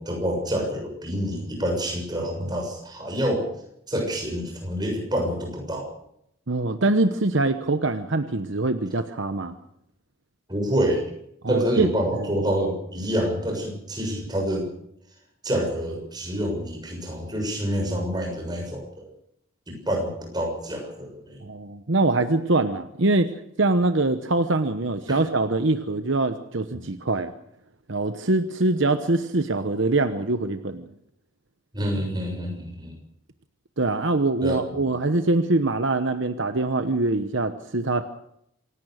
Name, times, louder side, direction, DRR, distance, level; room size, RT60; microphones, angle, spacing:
voice 1, 0.0-3.5 3.9-5.9 10.5-11.0 11.5-14.7 15.4-19.1 19.7-21.4 25.1-25.2 26.7-26.8 31.7-32.9 34.4-34.9, equal, 20° right, 1 dB, 6.8 m, -27 dB
voice 2, 6.5-9.6 11.4-11.9 21.4-23.3 23.6-27.3 27.9-30.9 33.8-38.0, right 2 dB, 65° right, 9 dB, 1.0 m, -23 dB
27.0 x 17.0 x 6.5 m, 0.76 s
head